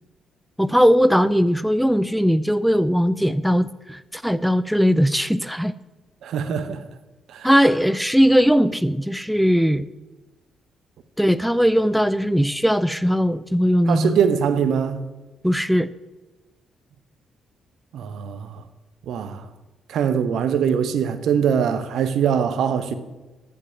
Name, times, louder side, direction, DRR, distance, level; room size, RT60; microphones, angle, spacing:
voice 1, 0.6-5.7 7.4-9.9 11.2-14.2 15.4-15.9, equal, ahead, 0.5 m, -19 dB
voice 2, 6.2-6.8 7.3-7.5 13.9-15.0 17.9-18.6 19.1-19.5 19.9-22.9, right 7 dB, 65° right, 0.9 m, -22 dB
13.0 x 5.5 x 7.2 m
hypercardioid pair, 45°, 0 cm